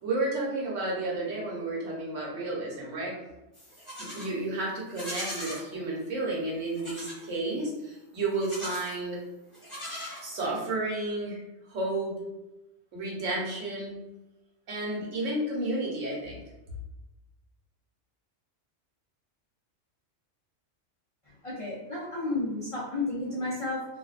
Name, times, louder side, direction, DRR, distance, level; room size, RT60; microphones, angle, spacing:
voice 1, 0.0-3.1 4.0-9.2 10.2-11.4 11.7-12.1 12.9-13.9 14.7-16.4, right 2 dB, 75° right, -4 dB, 1.1 m, -32 dB
Livestock farm animals working animals, 3.5-4.3 4.9-5.6 6.7-7.2 8.3-9.0 9.5-10.6, equal, 25° left, 1.1 m, -39 dB
voice 2, 21.4-23.8, left 2 dB, 60° left, -6 dB, 0.3 m, -32 dB
2.6 x 2.1 x 2.3 m, 0.98 s
omnidirectional pair, 1.3 m